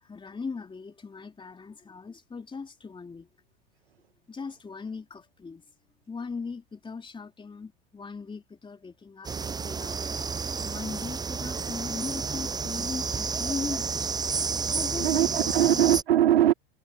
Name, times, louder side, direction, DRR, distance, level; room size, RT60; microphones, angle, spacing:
voice 1, 0.0-3.3 4.3-5.6 6.1-10.0 10.6-14.1 14.7-15.3 15.7-15.8, left 4 dB, 15° left, 3.4 m, -39 dB
sound 1, 9.2-16.0, right 5 dB, 15° right, 0.7 m, -31 dB
voice 2, 14.3-16.5, right 12 dB, 85° right, 1.6 m, -23 dB
hypercardioid pair, 95°, 29 cm